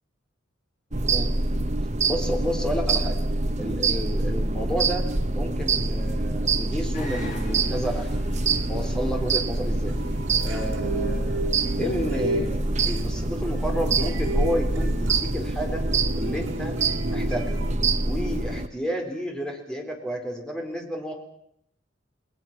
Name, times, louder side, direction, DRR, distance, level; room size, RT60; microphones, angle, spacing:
sound 1, 0.9-18.7, right 3 dB, 35° right, 1.0 m, -25 dB
voice 1, 2.0-3.2 3.6-5.1 5.3-8.2 8.7-10.0 10.4-15.8 16.2-16.7 17.1-17.6 18.0-21.1, equal, 5° left, 2 dB, 4.0 m, -31 dB
sound 2, 6.9-15.7, left 1 dB, 40° left, 6.3 m, -46 dB
sound 3, 9.9-17.7, right 1 dB, 75° right, 4.4 m, -33 dB
29.5 x 20.5 x 6.0 m, 0.72 s
head